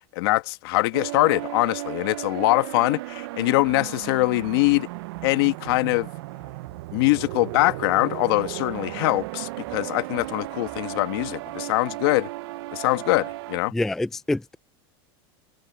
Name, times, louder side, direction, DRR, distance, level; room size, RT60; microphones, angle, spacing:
voice 1, 0.1-4.9 5.2-6.1 6.9-12.3 12.7-13.7, left 21 dB, 65° left, 1.4 m, -23 dB
sound 1, 0.9-13.6, right 19 dB, 70° right, 0.6 m, -35 dB
sound 2, 3.6-11.7, right 9 dB, 25° right, 6.3 m, -55 dB
voice 2, 13.7-14.6, left 2 dB, 5° left, 0.3 m, -26 dB
supercardioid pair, 155°, 13 cm